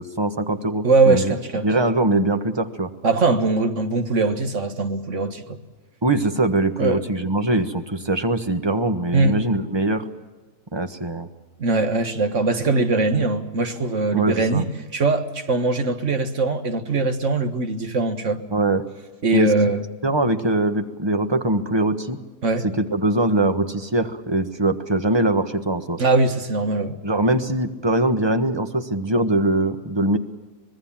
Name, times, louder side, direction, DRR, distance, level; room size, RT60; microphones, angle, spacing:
voice 1, 0.0-1.3 1.6-2.9 6.0-10.0 10.7-11.3 14.1-14.6 18.5-18.8 19.3-19.5 20.0-22.2 22.6-26.0 27.0-30.2, right 2 dB, 20° right, 1.3 m, -22 dB
voice 2, 0.8-1.7 3.0-5.6 6.8-7.0 9.1-9.4 11.6-18.4 19.2-19.8 22.4-22.7 26.0-26.9, right 3 dB, 50° right, 1.9 m, -21 dB
25.5 x 20.0 x 7.4 m
omnidirectional pair, 1.6 m